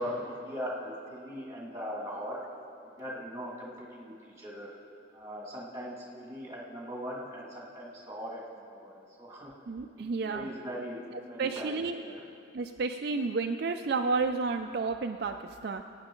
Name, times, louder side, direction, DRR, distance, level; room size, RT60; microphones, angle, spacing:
voice 1, 0.0-2.4 2.8-4.7 5.1-8.4 8.7-9.5 9.9-11.0 11.3-11.7 12.0-12.1, equal, 15° right, -3 dB, 2.0 m, -39 dB
voice 2, 9.7-10.5 11.4-12.0 12.5-15.8, right 4 dB, 55° right, 5 dB, 0.4 m, -31 dB
22.5 x 9.0 x 3.8 m, 2.6 s
head